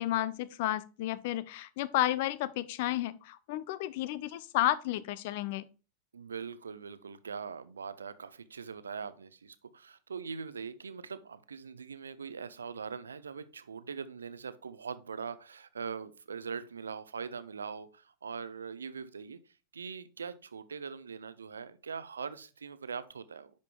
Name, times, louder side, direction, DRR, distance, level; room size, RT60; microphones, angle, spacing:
voice 1, 0.0-5.7, left 14 dB, 50° left, 0.5 m, -32 dB
voice 2, 6.1-23.5, right 6 dB, 70° right, 0.6 m, -42 dB
10.5 x 5.2 x 2.2 m
figure-of-eight pair, 90°, 0 cm